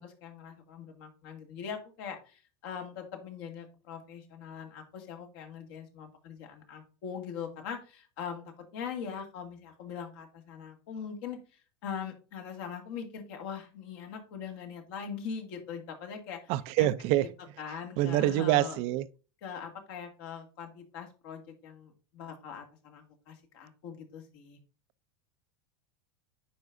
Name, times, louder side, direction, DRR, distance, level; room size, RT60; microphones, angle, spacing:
voice 1, 0.0-11.4 11.8-16.9 17.6-18.8 19.4-24.6, left 7 dB, 65° left, 2.1 m, -42 dB
voice 2, 16.5-17.3 18.0-19.1, right 15 dB, 50° right, 0.4 m, -26 dB
9.3 x 4.6 x 2.6 m
supercardioid pair, 115°, 13 cm